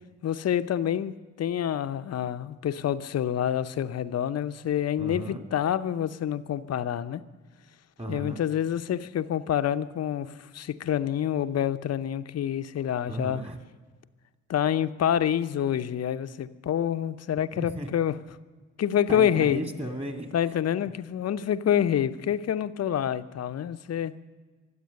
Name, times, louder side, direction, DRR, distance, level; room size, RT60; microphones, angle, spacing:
voice 1, 0.2-7.2 8.1-13.4 14.5-18.1 18.8-19.6 20.3-24.1, left 10 dB, 45° left, 12 dB, 0.8 m, -27 dB
voice 2, 5.0-5.4 8.0-8.4 13.1-13.6 17.5-17.9 19.1-20.9, right 1 dB, 15° right, 4 dB, 2.4 m, -35 dB
23.5 x 8.1 x 6.5 m, 1.4 s
hypercardioid pair, 45°, 37 cm